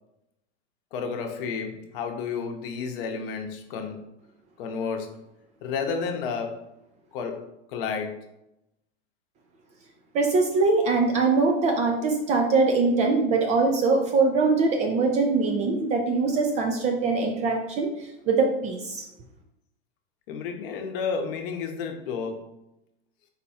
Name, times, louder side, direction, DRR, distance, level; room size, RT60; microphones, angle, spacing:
voice 1, 0.9-4.1 4.6-5.2 5.6-6.6 7.1-7.4 7.7-8.3 20.3-22.5, left 5 dB, 55° left, 4 dB, 0.8 m, -31 dB
voice 2, 10.1-19.0, right 3 dB, 25° right, 3 dB, 0.3 m, -23 dB
4.1 x 2.3 x 4.1 m, 0.85 s
hypercardioid pair, 125°, 32 cm